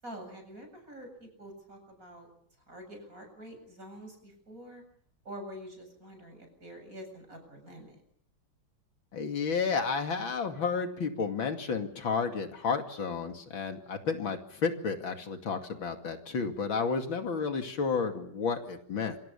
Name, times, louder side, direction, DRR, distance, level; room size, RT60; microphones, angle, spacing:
voice 1, 0.0-2.3 2.7-4.8 5.2-8.0, equal, 45° right, 5 dB, 8.0 m, -46 dB
voice 2, 9.1-19.2, left 5 dB, 85° left, 5 dB, 3.2 m, -31 dB
26.5 x 26.0 x 7.1 m, 0.63 s
omnidirectional pair, 2.1 m